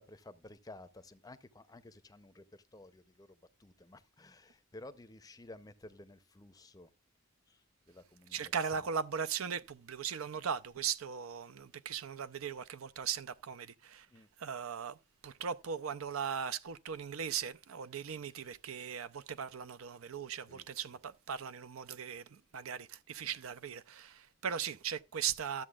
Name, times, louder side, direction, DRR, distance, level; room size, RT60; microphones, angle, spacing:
voice 1, 0.0-6.9 7.5-8.9 10.8-10.9 14.1-14.3 18.3-18.6 20.5-20.7 20.9-21.0 23.2-23.4, left 2 dB, 20° left, 0.5 m, -54 dB
voice 2, 8.3-14.1 14.4-15.0 15.2-25.6, right 7 dB, 80° right, 0.5 m, -38 dB
13.0 x 7.4 x 2.3 m
head